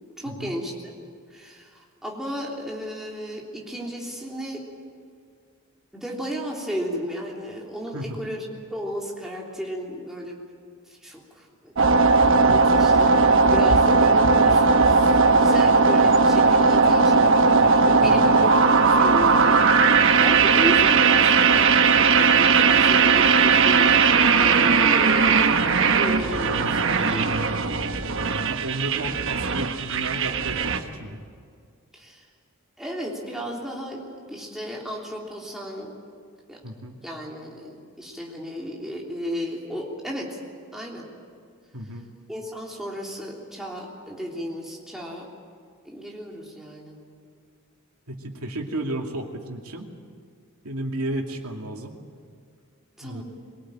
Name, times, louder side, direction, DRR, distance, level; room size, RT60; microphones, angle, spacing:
voice 1, 0.2-0.9 1.3-4.6 5.9-10.4 10.9-11.9 12.5-27.6 31.9-32.2 32.8-35.9 36.5-36.6 37.0-40.4 40.7-41.1 42.3-45.3 45.8-47.0 53.0-53.2, equal, ahead, -3 dB, 3.4 m, -34 dB
sound 1, 11.8-30.8, right 4 dB, 60° right, 1.2 m, -18 dB
voice 2, 28.4-31.2 36.6-37.0 41.7-42.1 48.1-49.9 50.6-52.0 53.0-53.2, right 1 dB, 85° right, 2 dB, 2.6 m, -33 dB
23.5 x 18.5 x 9.0 m, 2.1 s
head